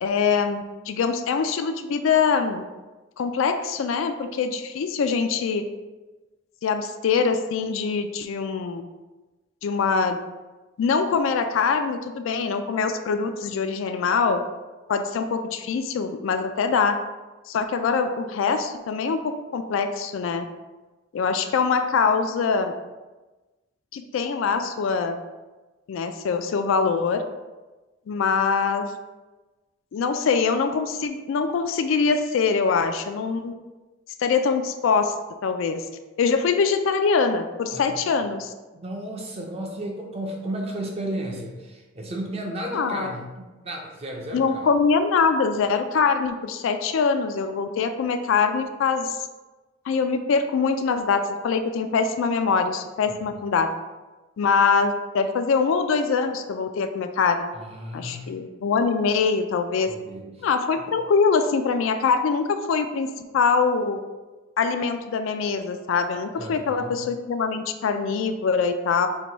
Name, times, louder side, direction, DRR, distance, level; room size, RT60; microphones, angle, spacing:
voice 1, 0.0-2.6 3.2-5.6 6.6-8.8 9.6-10.2 10.8-14.4 14.9-17.0 17.5-20.5 21.1-22.7 23.9-25.2 25.9-27.2 28.1-28.9 29.9-33.5 34.2-35.1 35.4-35.9 36.2-38.5 42.6-43.1 44.3-49.3 49.8-53.7 54.4-57.5 57.9-59.9 60.4-64.0 64.6-69.1, left 5 dB, 70° left, 8 dB, 0.3 m, -23 dB
voice 2, 38.7-44.7 53.1-53.4 57.5-58.3 59.9-60.5 66.3-67.0, right 1 dB, 30° right, 1 dB, 0.6 m, -34 dB
4.6 x 2.2 x 3.9 m, 1.2 s
head